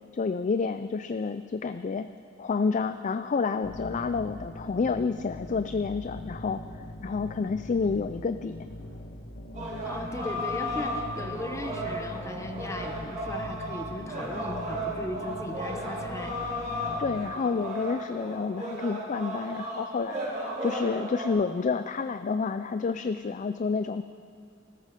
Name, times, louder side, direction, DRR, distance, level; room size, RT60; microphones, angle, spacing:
voice 1, 0.1-2.1 2.4-6.6 7.0-8.6 17.0-20.3 20.6-24.0, left 4 dB, 40° left, 10 dB, 0.4 m, -29 dB
sound 1, 3.6-17.2, left 1 dB, 75° left, 1.5 m, -41 dB
sound 2, 9.5-21.3, equal, 40° right, 4.5 m, -35 dB
voice 2, 9.8-16.3, left 1 dB, 15° left, 5 dB, 0.9 m, -37 dB
19.0 x 14.0 x 5.1 m, 2.4 s
head